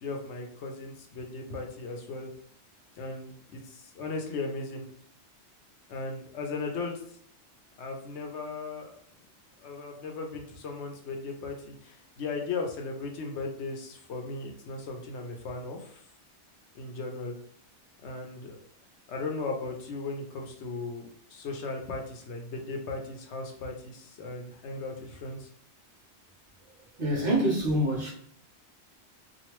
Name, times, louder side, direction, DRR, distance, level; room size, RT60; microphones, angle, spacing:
voice 1, 0.0-2.3 3.0-4.8 5.9-7.0 7.8-8.9 9.6-16.0 16.7-17.3 18.0-18.6 19.1-25.5, left 3 dB, 80° left, 0.9 m, -37 dB
voice 2, 27.0-28.1, right 1 dB, 50° right, 1.3 m, -26 dB
3.1 x 2.5 x 3.0 m
omnidirectional pair, 1.2 m